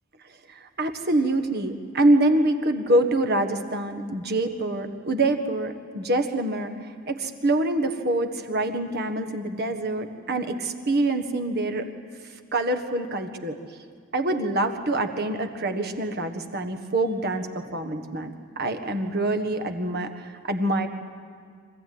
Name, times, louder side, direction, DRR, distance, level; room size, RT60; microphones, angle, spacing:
voice 1, 0.5-11.9 12.5-13.5 14.1-20.9, right 1 dB, 45° right, 7 dB, 1.6 m, -25 dB
25.5 x 15.5 x 9.5 m, 2.1 s
head